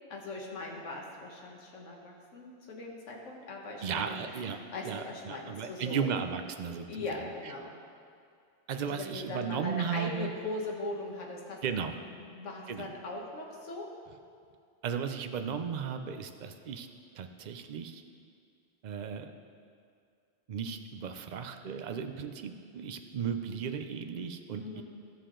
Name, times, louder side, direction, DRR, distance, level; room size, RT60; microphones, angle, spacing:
voice 1, 0.1-4.1 4.7-6.1 6.9-7.7 8.8-11.6 12.1-13.9 24.6-24.8, left 2 dB, 80° left, -1 dB, 1.6 m, -40 dB
voice 2, 3.8-4.6 4.8-6.9 7.2-7.5 8.7-10.3 11.6-12.0 12.7-12.9 14.8-16.9 17.1-18.0 18.8-19.3 20.5-24.8, right 7 dB, 50° right, 7 dB, 0.5 m, -35 dB
14.0 x 6.6 x 3.8 m, 2.3 s
omnidirectional pair, 1.3 m